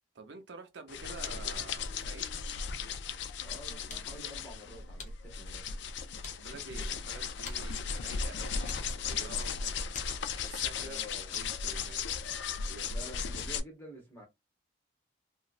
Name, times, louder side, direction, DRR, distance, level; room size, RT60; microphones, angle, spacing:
voice 1, 0.1-2.3 6.4-9.8 10.3-12.1, right 3 dB, 65° right, 0.5 m, -48 dB
sound 1, 0.9-13.6, left 6 dB, 65° left, 0.3 m, -36 dB
voice 2, 3.4-5.9 10.8-11.3 12.7-14.2, equal, 10° left, 1.1 m, -49 dB
sound 2, 3.5-11.8, left 4 dB, 40° left, 0.7 m, -53 dB
2.9 x 2.4 x 2.4 m
head